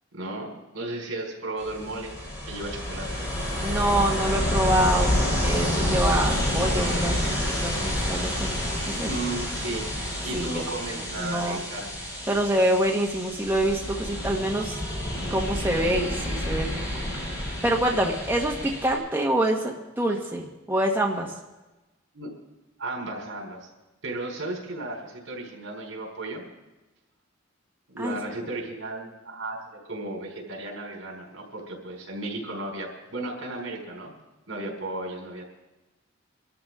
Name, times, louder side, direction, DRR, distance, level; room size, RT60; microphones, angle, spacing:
voice 1, 0.1-2.1 2.4-3.2 9.0-9.9 10.2-12.0 22.1-22.3 22.8-23.7 24.0-26.4 27.9-34.1 34.5-35.4, right 2 dB, 80° right, 0 dB, 4.6 m, -34 dB
Ocean, 1.6-19.0, left 1 dB, 20° left, 7.1 m, -29 dB
voice 2, 3.6-7.2 7.6-8.5 8.9-9.1 10.3-10.6 11.2-11.6 12.3-14.8 15.3-16.8 17.6-21.3 28.0-28.1, right 1 dB, 10° right, -2 dB, 1.4 m, -26 dB
24.0 x 13.5 x 3.7 m, 1.1 s
head